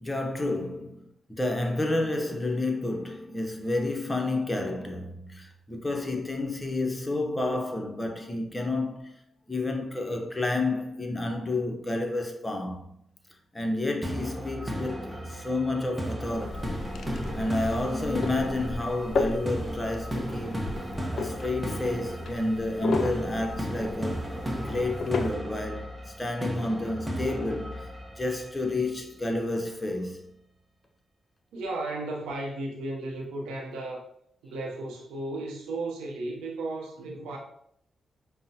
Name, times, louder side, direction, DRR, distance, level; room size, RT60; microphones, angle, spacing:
voice 1, 0.0-9.1 9.5-12.9 13.5-16.8 17.3-20.6 21.1-24.3 24.6-30.3, left 2 dB, 20° left, 0.7 m, -30 dB
sound 1, 14.0-29.0, equal, 15° right, 0.8 m, -35 dB
sound 2, 16.3-25.3, left 4 dB, 70° left, 0.3 m, -35 dB
voice 2, 31.5-34.0 34.4-37.4, right 2 dB, 90° right, 0.6 m, -34 dB
5.4 x 2.1 x 2.7 m
supercardioid pair, 50°, 0 cm